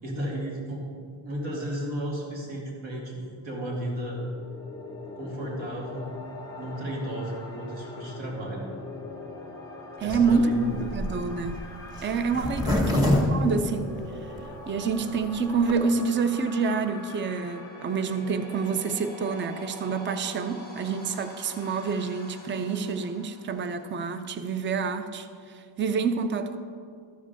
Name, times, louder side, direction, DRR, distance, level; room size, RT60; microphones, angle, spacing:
voice 1, 0.0-0.8 1.2-4.2 5.2-6.2 6.6-8.6 10.0-10.9 12.6-12.9, right 1 dB, 60° right, -3 dB, 2.8 m, -34 dB
sound 1, 4.1-23.9, left 2 dB, 10° left, 1.9 m, -43 dB
voice 2, 10.0-10.7 10.9-11.6 12.0-13.0 13.3-13.9 14.7-26.6, right 5 dB, 25° right, 10 dB, 0.5 m, -27 dB
Zipper (clothing), 10.1-14.4 14.9-15.0 15.2-15.3 15.5-15.8, left 1 dB, 10° right, 1.7 m, -27 dB
13.0 x 5.0 x 6.8 m, 2.2 s
cardioid pair, 135°, 49 cm